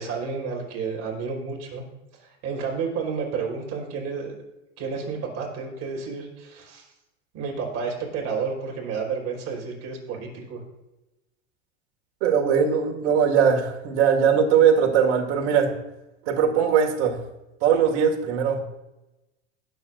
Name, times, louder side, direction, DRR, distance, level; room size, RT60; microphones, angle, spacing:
voice 1, 0.0-1.8 2.2-4.3 4.8-6.9 7.3-10.6, right 5 dB, 45° right, 0 dB, 4.7 m, -31 dB
voice 2, 12.2-15.7 16.3-17.2 17.6-18.7, right 7 dB, 65° right, 2 dB, 2.3 m, -20 dB
21.0 x 8.1 x 2.6 m, 1.0 s
supercardioid pair, 110°, 36 cm